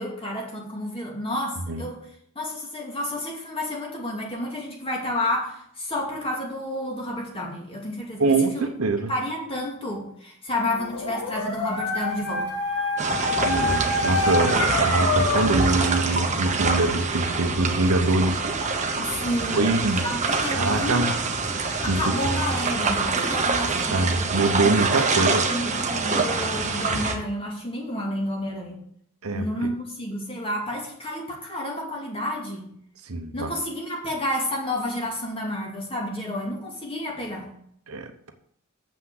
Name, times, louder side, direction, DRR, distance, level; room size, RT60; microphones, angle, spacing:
voice 1, 0.0-2.0 2.3-8.7 9.1-12.5 19.0-20.9 21.8-24.3 24.6-24.8 25.1-28.8 29.3-32.7 33.3-37.5, left 1 dB, 25° left, 2.6 m, -30 dB
voice 2, 8.2-9.1 13.4-18.7 19.5-20.1 20.5-21.1 21.9-22.0 23.9-25.5 29.2-29.7 33.0-33.5 37.9-38.3, right 2 dB, 70° right, 1.0 m, -24 dB
Dog, 10.7-15.8, left 3 dB, 90° left, 2.0 m, -26 dB
sound 1, 13.0-27.1, right 4 dB, 35° right, 1.1 m, -25 dB
7.3 x 6.0 x 7.7 m
head